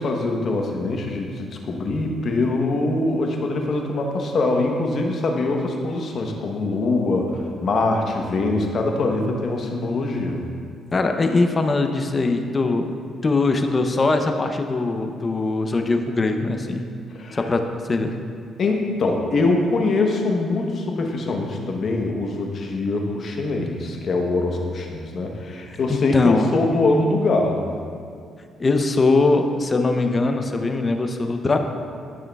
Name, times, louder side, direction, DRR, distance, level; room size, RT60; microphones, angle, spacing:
voice 1, 0.0-10.5 17.1-17.4 18.6-27.7, left 2 dB, 55° left, 2 dB, 1.0 m, -23 dB
voice 2, 10.9-12.9 13.2-16.9 17.3-17.6 17.9-18.1 25.9-26.5 28.6-31.6, left 3 dB, 30° left, 5 dB, 0.6 m, -21 dB
12.0 x 6.3 x 2.3 m, 2.2 s
cardioid pair, 90°, 0 cm